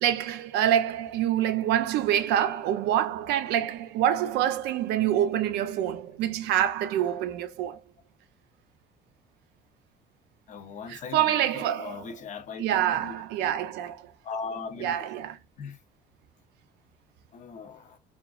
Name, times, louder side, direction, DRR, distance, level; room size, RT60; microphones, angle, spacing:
voice 1, 0.0-7.8 10.9-12.0 12.6-14.1 14.8-15.4, right 11 dB, 85° right, 0.4 m, -26 dB
voice 2, 10.5-13.5 14.2-15.0 15.6-15.8 17.3-18.0, left 5 dB, 45° left, 0.5 m, -39 dB
3.0 x 2.3 x 2.3 m
cardioid pair, 110°, 17 cm